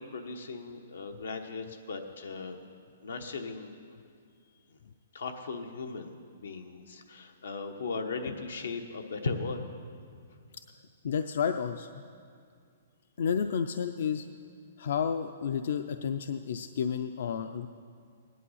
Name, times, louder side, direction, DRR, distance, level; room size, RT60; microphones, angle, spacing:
voice 1, 0.0-2.6 3.0-3.7 5.1-6.1 6.4-9.6, left 4 dB, 90° left, 4 dB, 1.2 m, -37 dB
voice 2, 11.0-12.0 13.2-14.3 14.8-17.7, left 7 dB, 60° left, 9 dB, 0.5 m, -31 dB
17.5 x 11.0 x 5.7 m, 2.3 s
hypercardioid pair, 170°, 0 cm